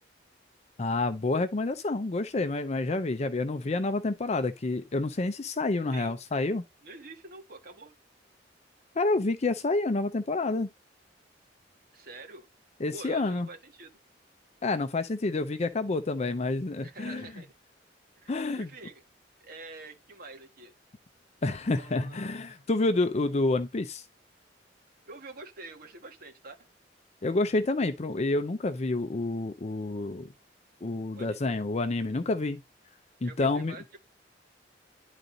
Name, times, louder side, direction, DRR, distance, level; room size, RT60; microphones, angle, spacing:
voice 1, 0.8-6.6 9.0-10.7 12.8-13.5 14.6-17.3 18.3-18.7 21.4-24.1 27.2-30.3 30.8-32.6 33.2-33.8, left 2 dB, 35° left, 0.5 m, -28 dB
voice 2, 6.8-7.9 11.9-12.5 12.9-14.0 16.8-17.5 18.2-19.0 19.4-20.7 21.7-22.4 25.1-26.7 31.1-31.4 33.2-34.0, right 2 dB, 55° right, 1.5 m, -46 dB
10.5 x 4.0 x 3.8 m
head